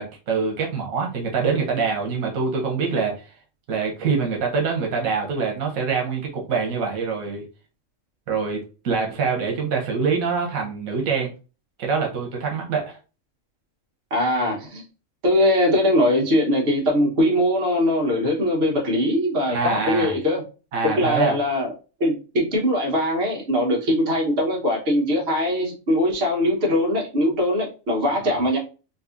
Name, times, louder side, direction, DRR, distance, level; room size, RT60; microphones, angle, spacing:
voice 1, 0.0-3.3 3.7-7.4 8.3-11.3 11.8-13.0 19.5-20.1 20.7-21.4 28.2-28.4, right 5 dB, 90° right, 1 dB, 1.3 m, -25 dB
voice 2, 14.1-14.8 15.2-20.4 20.8-21.7 22.0-28.6, left 1 dB, 50° right, -1 dB, 1.3 m, -21 dB
4.0 x 2.6 x 2.4 m, 0.33 s
omnidirectional pair, 1.4 m